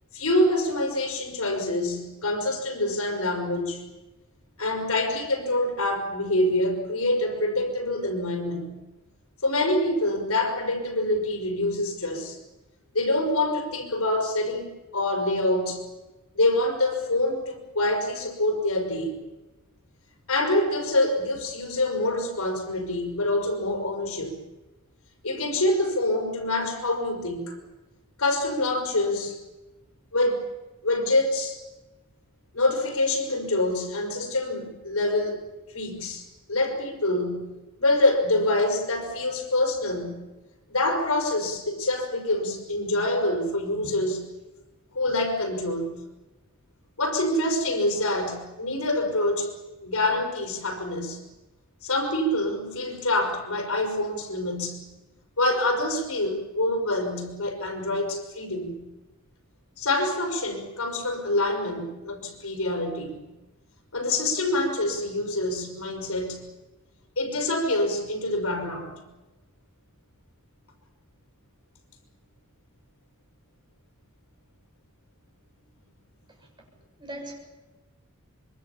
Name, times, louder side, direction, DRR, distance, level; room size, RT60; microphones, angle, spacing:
voice 1, 0.1-3.9 4.6-8.7 9.4-12.4 12.9-15.8 16.3-19.2 20.3-24.4 25.2-27.6 28.2-29.4 30.1-30.4 30.8-31.6 32.5-35.4 35.7-40.2 40.7-44.3 44.9-46.0 47.0-49.5 49.8-51.2 51.8-54.9 55.4-58.8 59.8-63.3 63.9-66.5 67.2-69.0, left 1 dB, 80° left, 2 dB, 5.7 m, -26 dB
voice 2, 76.3-76.7 77.0-77.4, right 1 dB, 20° right, 0 dB, 7.2 m, -40 dB
25.5 x 23.5 x 7.2 m, 1.1 s
head